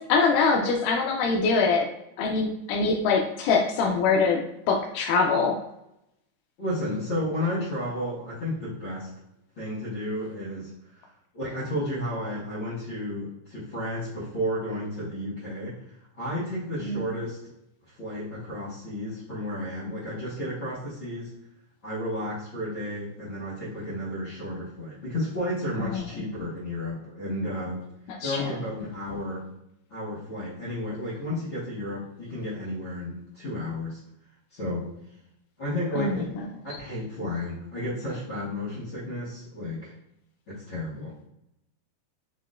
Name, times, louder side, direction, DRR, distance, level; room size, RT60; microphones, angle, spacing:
voice 1, 0.1-1.9 2.2-4.4 4.7-5.5 16.8-17.0 28.2-28.4 36.0-36.2, left 4 dB, 90° left, 0 dB, 2.2 m, -23 dB
voice 2, 6.6-9.1 9.6-10.7 11.0-11.1 11.3-15.8 16.2-17.4 17.9-21.3 21.8-27.9 28.2-29.4 29.9-34.0 34.5-34.9 35.6-36.3 36.8-39.9 40.5-41.1, left 1 dB, 45° left, -11 dB, 1.9 m, -32 dB
6.6 x 2.9 x 2.4 m, 0.83 s
omnidirectional pair, 3.7 m